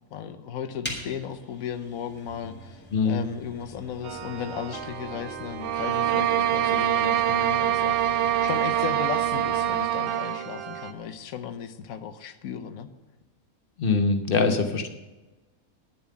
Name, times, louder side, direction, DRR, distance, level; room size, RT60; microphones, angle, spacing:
voice 1, 0.1-12.9, left 8 dB, 75° left, 9 dB, 1.2 m, -36 dB
sound 1, 0.8-10.0, right 1 dB, 5° left, 2.8 m, -44 dB
voice 2, 2.9-3.3 13.8-14.9, left 4 dB, 40° left, 6 dB, 1.1 m, -23 dB
sound 2, 4.0-10.9, right 7 dB, 85° right, 1.3 m, -39 dB
sound 3, 5.6-10.5, right 11 dB, 65° right, 0.7 m, -24 dB
11.0 x 7.1 x 8.4 m, 1.2 s
omnidirectional pair, 1.5 m